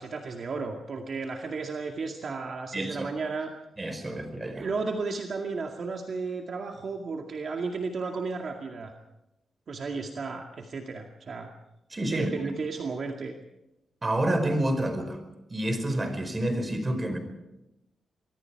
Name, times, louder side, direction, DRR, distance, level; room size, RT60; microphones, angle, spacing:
voice 1, 0.0-3.5 4.5-8.9 9.7-11.5 12.1-13.3, right 4 dB, 55° right, 2 dB, 2.2 m, -33 dB
voice 2, 2.7-3.1 3.8-4.7 11.9-12.3 14.0-15.2 15.5-17.2, right 1 dB, 25° right, 8 dB, 4.7 m, -28 dB
25.5 x 22.5 x 4.8 m, 0.93 s
cardioid pair, 105°, 0 cm